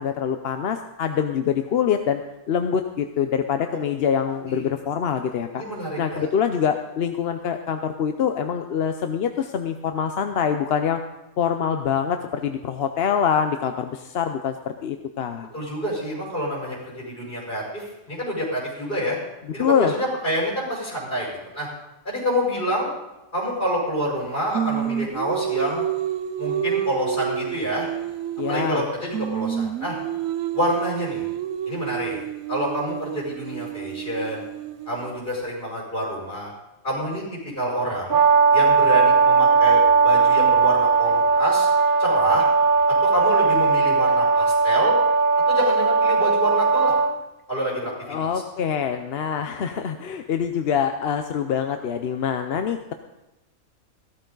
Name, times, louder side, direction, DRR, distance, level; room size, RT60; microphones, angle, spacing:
voice 1, 0.0-2.2 2.5-5.6 6.0-11.0 11.4-15.5 19.6-19.9 28.4-28.8 48.1-52.9, left 7 dB, 55° left, 7 dB, 0.8 m, -25 dB
voice 2, 5.6-6.3 15.5-19.2 19.5-21.7 22.0-22.9 23.3-25.8 26.4-27.9 28.5-29.9 30.5-31.2 31.7-34.5 34.9-36.5 36.8-37.2 37.6-38.2 38.5-41.7 42.0-42.4 43.0-44.9 45.5-46.9 47.5-47.9, equal, 40° left, -4 dB, 5.5 m, -27 dB
Singing, 24.5-28.9 29.1-35.1, right 10 dB, 85° right, 1.1 m, -29 dB
Brass instrument, 38.1-47.1, right 5 dB, 45° right, 1.0 m, -18 dB
15.5 x 13.0 x 3.9 m, 0.98 s
omnidirectional pair, 1.4 m